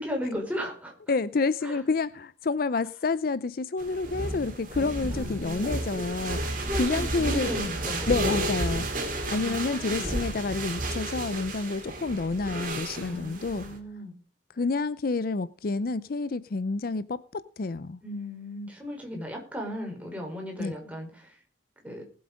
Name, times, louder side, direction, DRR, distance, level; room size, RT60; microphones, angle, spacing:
voice 1, 0.0-0.9 1.6-1.8 5.1-5.7 6.5-8.5 9.3-10.1 11.8-11.9 12.9-14.1 18.0-21.4 21.8-22.0, left 1 dB, 10° right, 4.4 m, -36 dB
voice 2, 1.1-7.5 8.1-8.9 9.3-13.7 14.6-18.0 20.6-20.7, left 3 dB, 50° left, 0.5 m, -29 dB
sound 1, 3.8-13.8, right 1 dB, 45° right, 3.0 m, -32 dB
19.5 x 7.9 x 5.1 m
head